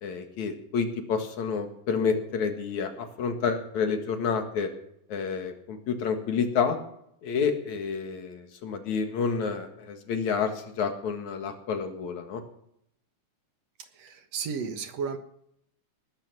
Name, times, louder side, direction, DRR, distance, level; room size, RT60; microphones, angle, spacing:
voice 1, 0.0-4.7 5.1-6.8 7.2-10.5 10.8-12.4, left 6 dB, 75° left, 6 dB, 3.1 m, -29 dB
voice 2, 13.9-15.2, right 6 dB, 65° right, 7 dB, 2.4 m, -33 dB
19.5 x 11.0 x 6.1 m, 0.73 s
omnidirectional pair, 3.3 m